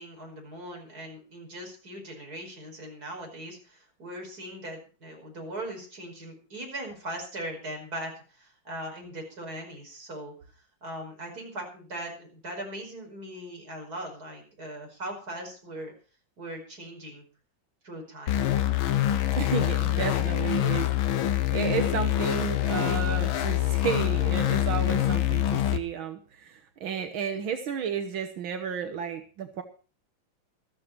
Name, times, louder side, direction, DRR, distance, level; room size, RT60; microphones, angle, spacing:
voice 1, 0.0-15.9 16.4-17.3 17.8-18.4, right 1 dB, 45° right, 1 dB, 5.7 m, -40 dB
sound 1, 18.3-25.8, left 12 dB, 80° left, 1.8 m, -25 dB
voice 2, 19.4-20.9 21.5-29.6, right 7 dB, 80° right, 7 dB, 2.0 m, -32 dB
14.0 x 13.5 x 4.6 m, 0.36 s
omnidirectional pair, 2.2 m